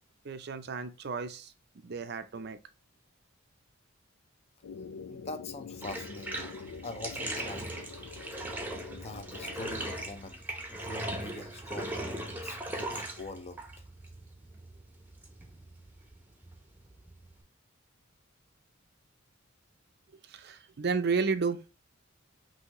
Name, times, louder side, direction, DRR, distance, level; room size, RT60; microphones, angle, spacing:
voice 1, 0.2-1.5 1.8-2.6 20.3-21.6, right 5 dB, 50° right, 0.5 m, -32 dB
sound 1, 4.6-10.0, left 5 dB, 85° left, 0.4 m, -46 dB
voice 2, 5.1-6.5 6.8-7.8 8.9-10.4 10.7-13.6, left 2 dB, 30° left, 0.6 m, -43 dB
Bathtub (filling or washing), 5.8-17.4, right 1 dB, 10° right, 0.7 m, -39 dB
5.6 x 2.7 x 2.9 m
head